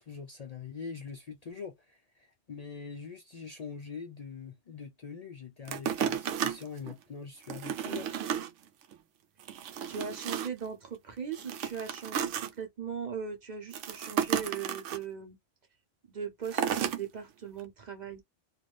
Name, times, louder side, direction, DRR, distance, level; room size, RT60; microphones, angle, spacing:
voice 1, 0.0-8.2, left 6 dB, 65° left, 0.4 m, -43 dB
sound 1, 5.7-6.9 7.4-8.5 8.9-9.0 9.4-10.7 11.3-12.5 13.7-15.0 16.5-17.0 17.6-17.7, right 8 dB, 75° right, 0.9 m, -33 dB
voice 2, 9.9-15.4 16.1-18.2, right 7 dB, 40° right, 0.8 m, -39 dB
2.5 x 2.5 x 3.2 m
omnidirectional pair, 1.3 m